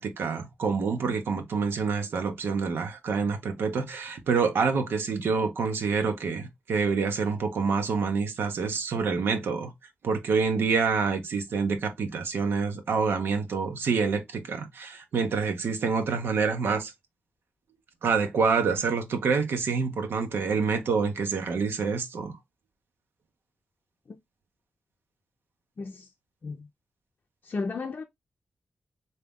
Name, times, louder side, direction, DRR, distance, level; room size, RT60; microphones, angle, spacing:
voice 1, 0.0-9.7 10.0-16.9 18.0-22.4, right 5 dB, 80° right, 0.8 m, -27 dB
voice 2, 25.8-26.1 26.4-26.6 27.5-28.0, left 4 dB, 55° left, 0.5 m, -33 dB
3.5 x 2.8 x 3.4 m
cardioid pair, 50°, 4 cm